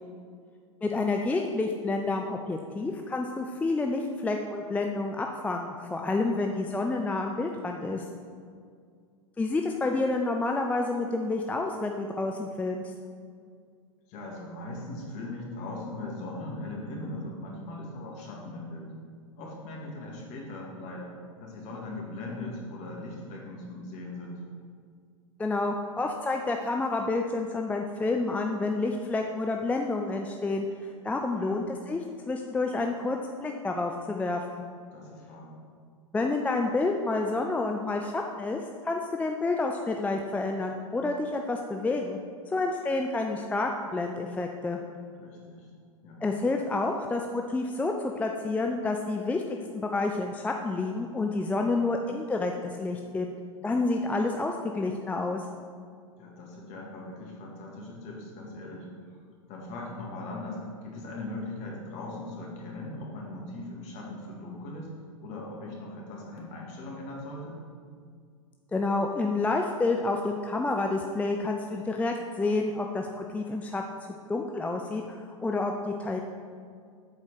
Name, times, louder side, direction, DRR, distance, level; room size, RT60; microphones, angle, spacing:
voice 1, 0.8-8.0 9.4-12.9 25.4-32.0 32.3-34.6 36.1-42.2 42.5-44.8 46.2-49.4 49.7-53.3 53.6-55.4 68.7-73.8 74.3-76.2, left 3 dB, 10° left, 2 dB, 0.4 m, -29 dB
voice 2, 6.1-6.6 14.1-18.9 19.3-21.2 21.4-24.4 31.3-31.6 34.9-35.6 45.2-45.7 46.0-46.2 56.2-59.2 59.5-64.9 65.2-67.6, left 2 dB, 45° left, -2 dB, 2.1 m, -39 dB
7.7 x 4.4 x 5.8 m, 2.1 s
hypercardioid pair, 100°, 17 cm